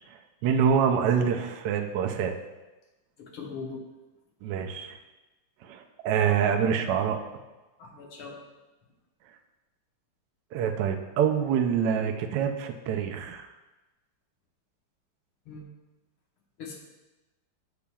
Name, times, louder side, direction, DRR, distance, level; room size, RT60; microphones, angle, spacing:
voice 1, 0.4-2.3 4.4-5.0 5.6-7.2 10.5-13.5, right 7 dB, 70° right, 4 dB, 1.0 m, -26 dB
voice 2, 3.2-3.8 7.8-8.4 15.5-15.6 16.6-16.8, left 4 dB, 75° left, -1 dB, 2.0 m, -40 dB
8.4 x 6.8 x 2.3 m, 1.1 s
omnidirectional pair, 2.4 m